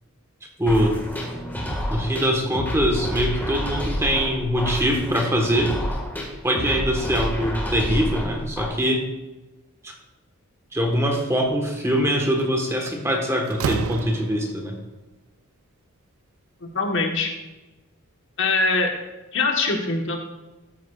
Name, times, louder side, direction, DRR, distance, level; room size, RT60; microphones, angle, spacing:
voice 1, 0.6-0.9 1.9-5.7 6.4-9.1 9.8-9.9 10.7-14.7, equal, 15° right, 1 dB, 1.3 m, -23 dB
sound 1, 0.7-8.7, equal, 10° left, 1.7 m, -29 dB
Slam, 12.2-12.4 12.9-14.7, right 7 dB, 75° right, 0.3 m, -31 dB
voice 2, 16.6-17.3 18.4-18.9 19.3-20.2, left 3 dB, 60° left, 2 dB, 1.2 m, -22 dB
13.5 x 9.2 x 2.4 m, 1.1 s
head